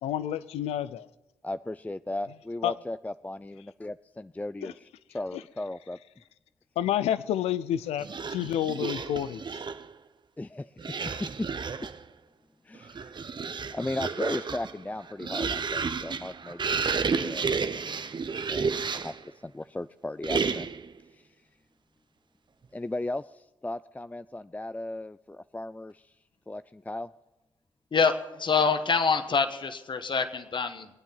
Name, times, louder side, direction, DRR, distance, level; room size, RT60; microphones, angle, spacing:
voice 1, 0.0-1.1 2.6-2.7 4.6-4.7 6.8-9.4, left 11 dB, 85° left, 0.5 m, -29 dB
voice 2, 1.4-6.0 10.4-11.0 11.4-11.5 12.6-13.2 13.6-17.5 17.7-17.9 18.3-20.7 21.1-21.4 22.7-26.1 26.5-27.1, left 2 dB, 15° left, 0.4 m, -36 dB
sound 1, 8.0-9.9 10.8-12.0 12.7-19.2 20.2-20.9, right 5 dB, 45° right, 0.9 m, -31 dB
voice 3, 27.9-30.9, left 5 dB, 50° left, 1.3 m, -26 dB
22.0 x 9.1 x 5.7 m
supercardioid pair, 45°, 10 cm